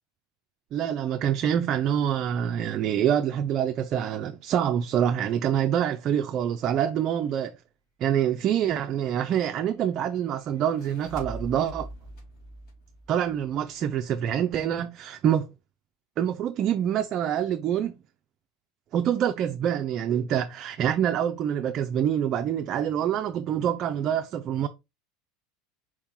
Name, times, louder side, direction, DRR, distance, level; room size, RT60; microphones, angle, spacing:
voice 1, 0.7-7.5 8.0-11.9 13.1-15.5 16.2-17.9 18.9-24.7, right 9 dB, 40° right, 0.4 m, -26 dB
sound 1, 10.6-13.9, right 1 dB, 65° left, 2.5 m, -42 dB
4.7 x 2.9 x 3.6 m
supercardioid pair, 120°, 0 cm